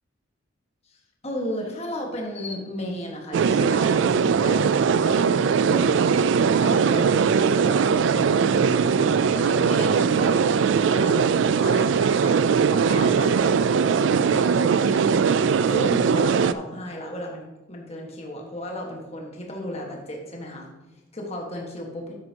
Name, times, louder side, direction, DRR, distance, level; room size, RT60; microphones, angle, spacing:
voice 1, 0.8-6.1 6.6-15.3 15.6-20.7 21.1-22.2, equal, 35° left, 0 dB, 1.5 m, -35 dB
sound 1, 3.3-16.5, right 6 dB, 70° right, 0.3 m, -20 dB
9.5 x 8.9 x 2.9 m, 1.0 s
head